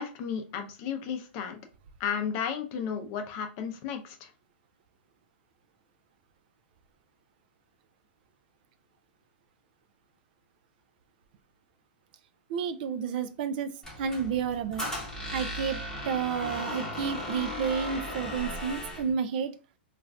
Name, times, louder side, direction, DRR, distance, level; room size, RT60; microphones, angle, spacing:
voice 1, 0.0-1.6 2.0-4.3, left 7 dB, 40° left, 6 dB, 0.5 m, -33 dB
voice 2, 12.5-14.9 15.3-19.6, right 7 dB, 55° right, 9 dB, 0.4 m, -31 dB
Squeak, 13.8-19.1, left 1 dB, 5° left, 0.9 m, -36 dB
2.4 x 2.2 x 3.3 m, 0.34 s
hypercardioid pair, 140°, 6 cm